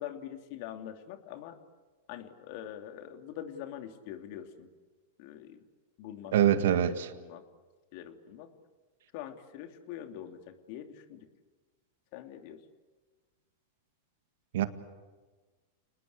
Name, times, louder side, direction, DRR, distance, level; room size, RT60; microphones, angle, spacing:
voice 1, 0.0-1.6 2.1-4.7 5.2-5.6 6.0-6.3 6.6-7.4 7.9-8.5 9.1-11.3 12.1-12.6, left 10 dB, 55° left, 6 dB, 2.9 m, -44 dB
voice 2, 6.3-7.1 14.5-14.7, right 11 dB, 70° right, 10 dB, 1.9 m, -24 dB
30.0 x 20.0 x 8.7 m, 1.3 s
hypercardioid pair, 110°, 0 cm